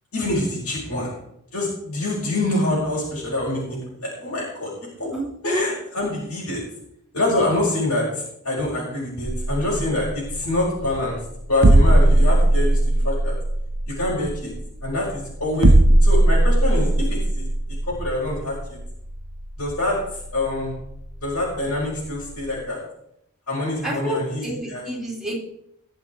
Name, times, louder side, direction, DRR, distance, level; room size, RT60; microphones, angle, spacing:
voice 1, 0.1-1.1 1.5-4.7 5.0-5.1 5.4-6.6 7.1-11.2 11.5-13.3 13.9-14.5 14.8-15.7 16.0-17.5 17.9-18.8 19.6-20.0 20.3-20.7 21.2-22.8 23.5-24.8, left 1 dB, 75° left, -7 dB, 5.5 m, -25 dB
voice 2, 5.1-5.7 23.8-25.5, right 1 dB, ahead, -3 dB, 3.3 m, -28 dB
sound 1, 9.3-22.6, right 1 dB, 55° right, 0.9 m, -20 dB
20.5 x 7.3 x 4.6 m, 0.76 s
head